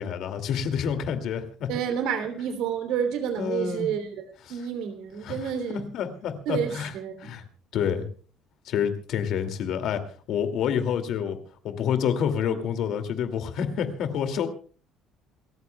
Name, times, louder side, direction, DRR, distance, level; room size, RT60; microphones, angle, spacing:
voice 1, 0.0-1.7 3.4-3.9 5.2-5.5 5.9-6.9 7.2-7.4 7.7-8.1 8.7-11.4 11.6-14.5, left 8 dB, 55° left, 8 dB, 2.3 m, -28 dB
voice 2, 1.7-4.2 4.5-5.9 6.4-7.3, right 8 dB, 70° right, 9 dB, 3.0 m, -29 dB
28.0 x 14.5 x 2.3 m, 0.39 s
cardioid pair, 160°, 0 cm